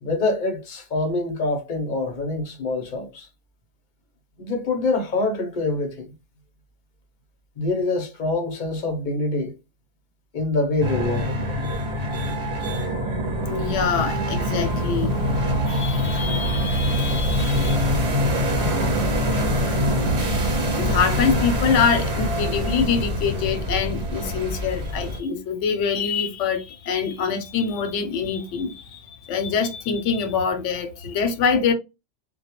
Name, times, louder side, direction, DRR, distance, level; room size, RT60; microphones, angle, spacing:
voice 1, 0.0-3.3 4.4-6.1 7.6-9.5 10.3-11.3, left 2 dB, 50° left, 0.7 m, -25 dB
sound 1, 10.8-25.2, equal, 65° right, 1.2 m, -24 dB
voice 2, 13.5-18.1 18.3-18.4 20.8-31.7, left 6 dB, 85° left, 0.9 m, -25 dB
2.2 x 2.1 x 2.8 m
omnidirectional pair, 1.2 m